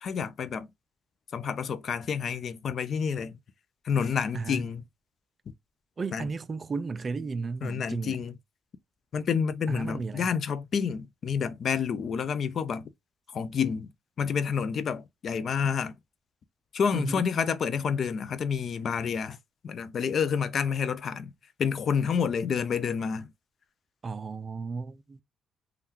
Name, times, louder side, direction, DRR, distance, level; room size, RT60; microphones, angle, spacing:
voice 1, 0.0-0.7 1.3-3.4 3.8-4.8 6.1-6.3 7.6-8.3 9.1-12.9 13.3-13.9 14.2-15.9 16.7-19.4 19.6-21.3 21.6-23.3, left 6 dB, 55° left, 0.4 m, -29 dB
voice 2, 4.3-4.7 6.0-8.2 9.7-10.3 16.9-17.2 24.0-25.2, right 4 dB, 35° right, 0.4 m, -34 dB
3.5 x 2.3 x 2.8 m
cardioid pair, 90°, 0 cm